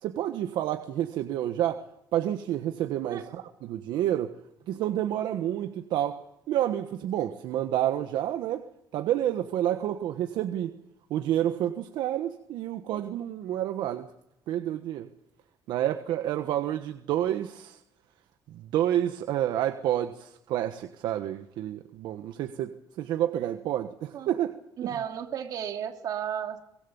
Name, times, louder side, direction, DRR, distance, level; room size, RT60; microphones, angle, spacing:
voice 1, 0.0-1.8 2.1-4.3 4.7-6.2 6.5-8.6 8.9-10.7 11.1-14.1 14.5-15.1 15.7-17.8 18.5-24.5, right 12 dB, 75° right, 7 dB, 1.3 m, -29 dB
voice 2, 24.8-26.6, right 9 dB, 55° right, 4 dB, 2.8 m, -34 dB
24.0 x 19.5 x 7.1 m, 0.82 s
cardioid pair, 140°, 8 cm